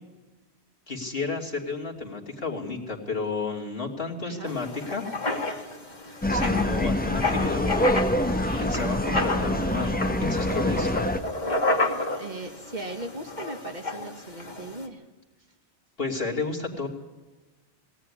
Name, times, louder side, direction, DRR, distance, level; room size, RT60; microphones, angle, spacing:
voice 1, 0.9-5.1 6.3-11.0 16.0-16.9, left 4 dB, 60° left, -1 dB, 3.0 m, -32 dB
voice 2, 4.2-4.5 6.4-6.7 12.1-15.0, right 2 dB, 45° right, 5 dB, 2.2 m, -38 dB
Writing, 4.5-14.8, left 2 dB, 40° left, 2.2 m, -31 dB
sound 1, 6.2-11.2, left 1 dB, 10° left, 1.0 m, -25 dB
20.5 x 17.5 x 9.8 m, 1.2 s
omnidirectional pair, 1.1 m